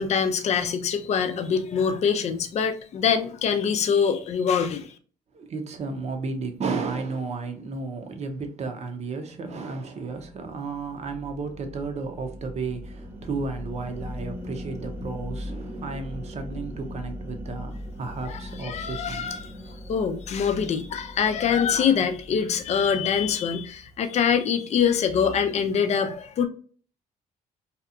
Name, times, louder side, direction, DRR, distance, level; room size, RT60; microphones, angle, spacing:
voice 1, 0.0-4.9 18.3-19.5 19.9-26.5, left 7 dB, 50° left, 0.4 m, -24 dB
voice 2, 5.3-19.4, right 4 dB, 50° right, 0.6 m, -33 dB
sound 1, 10.1-23.6, left 1 dB, 10° right, 0.8 m, -39 dB
2.8 x 2.3 x 2.4 m
cardioid pair, 80°, 15 cm